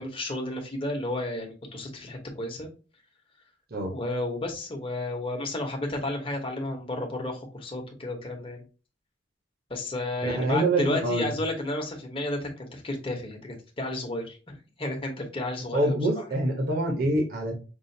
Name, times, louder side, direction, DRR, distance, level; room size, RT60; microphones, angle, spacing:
voice 1, 0.0-2.7 3.9-8.6 9.7-16.2, left 2 dB, 30° left, 1 dB, 1.0 m, -32 dB
voice 2, 10.2-11.3 15.7-17.6, right 1 dB, 50° right, 1 dB, 1.0 m, -25 dB
5.4 x 2.5 x 2.7 m, 0.33 s
head